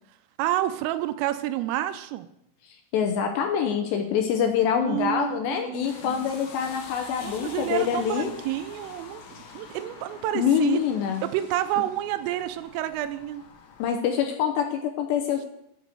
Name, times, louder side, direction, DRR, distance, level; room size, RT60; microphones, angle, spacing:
voice 1, 0.4-2.3 4.8-6.3 7.2-9.2 9.5-10.8 11.2-13.4, right 13 dB, 85° right, 11 dB, 3.1 m, -29 dB
voice 2, 2.9-8.3 10.3-11.2 13.8-15.5, left 8 dB, 80° left, 4 dB, 2.5 m, -25 dB
sound 1, 5.8-13.9, left 5 dB, 65° left, 2.3 m, -45 dB
8.2 x 8.0 x 7.6 m, 0.78 s
omnidirectional pair, 6.0 m